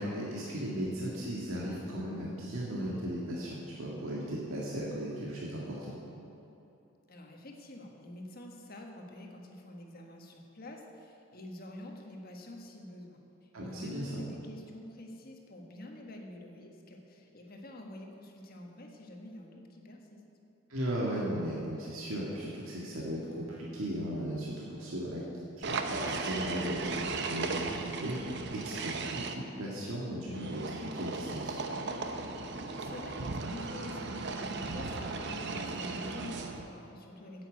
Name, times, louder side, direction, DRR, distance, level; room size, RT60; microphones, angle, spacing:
voice 1, 0.0-5.9 13.5-14.2 20.7-25.2 25.6-28.2 28.5-31.6, equal, 85° right, -5 dB, 1.9 m, -36 dB
voice 2, 7.1-20.2 32.6-37.5, left 1 dB, 45° left, 1 dB, 1.4 m, -47 dB
sound 1, 25.6-29.3 30.3-36.7, right 3 dB, 55° right, 0.8 m, -36 dB
9.3 x 8.6 x 8.3 m, 2.9 s
head